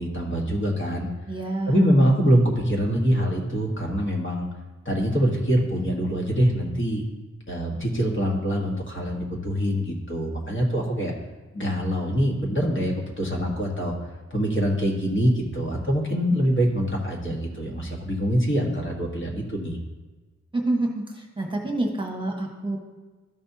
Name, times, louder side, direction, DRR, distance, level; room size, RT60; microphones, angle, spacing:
voice 1, 0.0-1.1 1.7-4.5 4.8-7.0 7.5-11.1 11.5-13.9 14.3-19.8, equal, 45° left, -1 dB, 1.5 m, -24 dB
voice 2, 1.3-2.2 20.5-22.8, right 2 dB, 15° right, 0 dB, 1.3 m, -28 dB
13.0 x 5.3 x 2.8 m, 1.3 s
wide cardioid pair, 75°, 29 cm